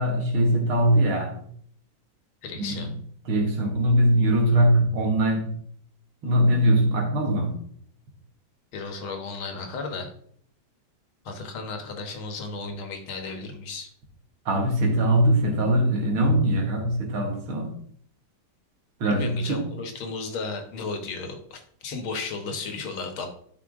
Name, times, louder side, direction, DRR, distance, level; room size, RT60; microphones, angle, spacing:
voice 1, 0.0-1.4 2.6-2.9 3.3-5.5 6.2-7.5 14.5-17.8 19.0-19.6, right 1 dB, 90° right, 2 dB, 2.6 m, -22 dB
voice 2, 2.4-2.9 8.7-10.1 11.2-13.9 19.1-23.3, left 4 dB, 80° left, 5 dB, 2.1 m, -34 dB
12.0 x 5.6 x 3.7 m, 0.63 s
omnidirectional pair, 2.2 m